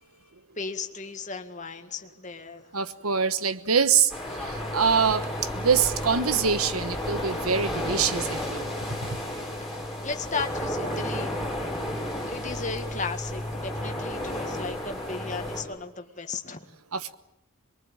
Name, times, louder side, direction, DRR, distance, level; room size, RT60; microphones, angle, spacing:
voice 1, 0.6-2.7 9.6-11.3 12.1-16.7, left 4 dB, 35° left, 6 dB, 1.8 m, -35 dB
voice 2, 2.7-4.1 4.4-5.3 5.6-8.6 16.9-17.2, right 6 dB, 85° right, 12 dB, 1.3 m, -24 dB
sound 1, 4.1-15.6, left 1 dB, ahead, 6.2 m, -32 dB
23.5 x 22.5 x 9.0 m, 0.84 s
head